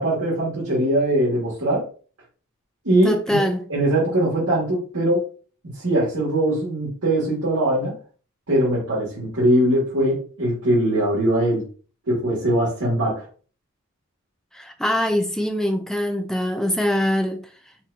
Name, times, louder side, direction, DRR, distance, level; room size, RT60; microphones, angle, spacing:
voice 1, 0.0-1.8 2.8-3.4 3.7-5.2 5.6-8.0 8.5-11.7 12.0-13.2, right 1 dB, 85° right, 2.1 m, -21 dB
voice 2, 3.0-3.6 14.5-17.4, equal, ahead, 0.4 m, -23 dB
5.8 x 2.7 x 2.7 m
head